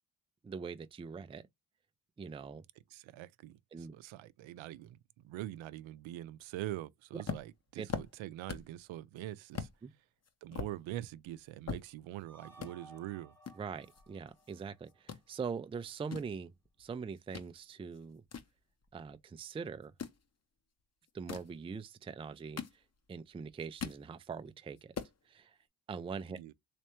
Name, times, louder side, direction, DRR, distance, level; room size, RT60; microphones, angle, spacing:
voice 1, 0.4-1.4 2.2-2.6 3.7-3.9 7.1-7.2 7.8-7.9 9.8-9.9 13.6-16.5 16.8-18.2 18.9-19.9 21.1-22.6 23.1-24.9 25.3-25.6 25.9-26.4, right 5 dB, 15° right, 0.3 m, -42 dB
voice 2, 2.9-9.7 10.4-13.3 26.3-26.5, right 14 dB, 70° right, 0.6 m, -44 dB
sound 1, 7.3-8.8 9.1-9.2 9.5-9.8 10.2-12.2 12.5-12.7 13.4-14.6 14.9-15.2 15.8-17.5 17.9-19.2 19.8-20.2 21.1-21.6 22.2-23.2 23.5-24.1 24.5-24.6 24.8-25.2, left 6 dB, 30° left, 0.9 m, -42 dB
sound 2, 12.3-15.4, right 2 dB, 5° left, 0.8 m, -59 dB
3.3 x 3.2 x 3.0 m
supercardioid pair, 65°, 48 cm